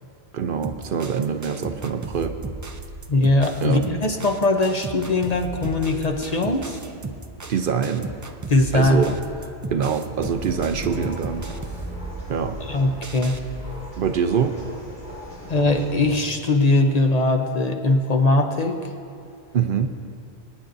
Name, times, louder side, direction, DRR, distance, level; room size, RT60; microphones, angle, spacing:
voice 1, 0.3-2.4 3.6-3.8 7.5-8.1 8.7-9.2 9.4-11.5 12.3-12.6 14.0-14.6 19.5-19.9, right 7 dB, 60° right, 7 dB, 0.7 m, -24 dB
sound 1, 0.6-13.4, right 3 dB, 30° right, 0.3 m, -36 dB
voice 2, 3.1-6.8 8.5-9.1 12.7-13.4 15.5-18.9, left 2 dB, 45° left, 3 dB, 0.8 m, -20 dB
sound 2, 10.2-16.2, equal, 85° left, 3.1 m, -37 dB
24.5 x 9.4 x 2.6 m, 2.5 s
omnidirectional pair, 1.1 m